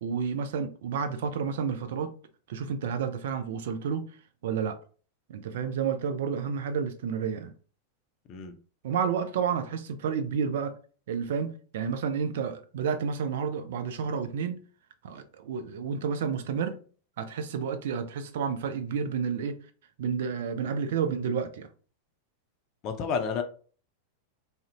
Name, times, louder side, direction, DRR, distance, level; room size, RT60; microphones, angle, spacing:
voice 1, 0.0-2.1 2.5-4.0 4.4-4.8 5.3-7.5 8.8-10.7 11.1-14.6 15.0-16.8 17.2-19.6 20.0-21.7, right 6 dB, 55° right, 0.3 m, -30 dB
voice 2, 22.8-23.4, left 6 dB, 40° left, 0.4 m, -30 dB
2.4 x 2.0 x 2.7 m
figure-of-eight pair, 90°, 0 cm